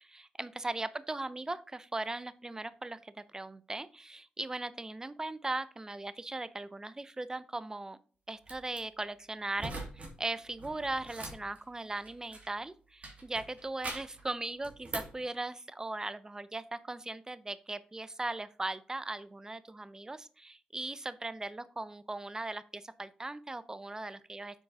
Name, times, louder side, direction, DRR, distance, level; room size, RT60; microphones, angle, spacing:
voice 1, 0.0-8.0 8.3-24.6, right 2 dB, 20° right, 15 dB, 0.6 m, -39 dB
sound 1, 8.4-8.8 9.6-10.1 10.4-12.6 13.0-14.2 14.6-15.2, right 2 dB, 50° right, 2.5 m, -42 dB
7.2 x 4.6 x 4.0 m, 0.40 s
cardioid pair, 60°, 3 cm